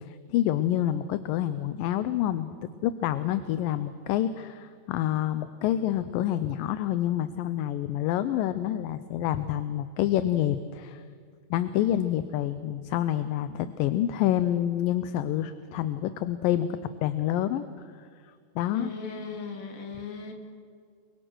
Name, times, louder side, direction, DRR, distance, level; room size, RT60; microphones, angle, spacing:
voice 1, 0.0-11.0 11.5-17.6 18.0-18.9, left 12 dB, 80° left, 12 dB, 2.3 m, -28 dB
voice 2, 18.7-20.3, left 5 dB, 50° left, 3 dB, 3.7 m, -37 dB
29.5 x 23.5 x 6.2 m, 2.1 s
omnidirectional pair, 4.2 m